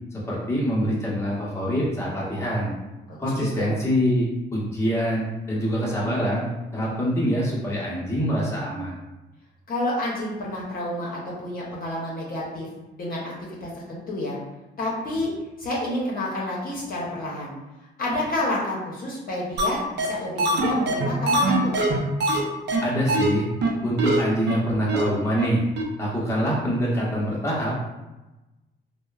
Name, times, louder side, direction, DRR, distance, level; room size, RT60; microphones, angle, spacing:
voice 1, 0.1-2.7 3.2-6.4 6.7-8.9 22.8-23.4 23.8-25.6 26.0-27.7, equal, 15° left, -6 dB, 0.8 m, -25 dB
voice 2, 3.1-3.7 9.7-12.7 13.0-13.3 13.6-14.4 14.8-15.3 15.6-17.5 18.0-21.7, left 1 dB, 45° left, -5 dB, 0.7 m, -29 dB
sound 1, 19.6-19.7 20.0-20.1 20.4-22.4 22.7-22.8 23.1-23.3 23.6-23.7 24.0-24.2 24.5-24.6 24.9-25.0 25.4-25.5 25.8-25.9, right 2 dB, 60° right, 0.5 m, -22 dB
2.9 x 2.1 x 2.3 m, 1.1 s
cardioid pair, 90°, 20 cm